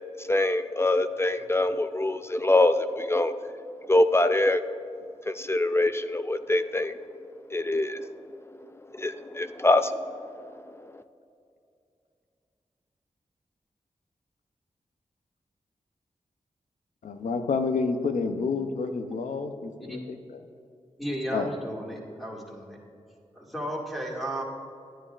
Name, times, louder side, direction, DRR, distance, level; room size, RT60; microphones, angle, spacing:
voice 1, 0.2-3.3 3.9-4.6 5.3-6.9 7.5-8.1 8.9-10.5 10.8-11.0, left 2 dB, 20° left, 10 dB, 0.4 m, -24 dB
voice 2, 17.0-20.4 21.3-21.5, left 4 dB, 80° left, 7 dB, 0.6 m, -29 dB
voice 3, 21.0-22.8 23.3-24.4, equal, ahead, -4 dB, 2.0 m, -34 dB
10.0 x 9.9 x 2.4 m, 2.4 s
cardioid pair, 50°, 13 cm